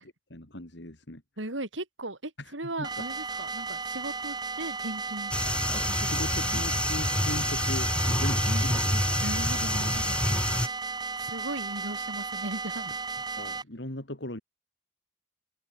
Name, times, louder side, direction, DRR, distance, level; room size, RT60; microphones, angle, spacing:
voice 1, 0.3-1.2 2.4-2.5 2.8-3.0 6.0-8.8 13.4-14.4, left 1 dB, 65° left, 3.6 m, -38 dB
voice 2, 1.4-5.3 5.7-6.6 8.2-13.0, right 1 dB, 80° right, 5.3 m, -38 dB
sound 1, 2.8-13.6, right 4 dB, 20° right, 1.1 m, -35 dB
sound 2, 5.3-10.7, left 1 dB, 5° left, 0.9 m, -27 dB
head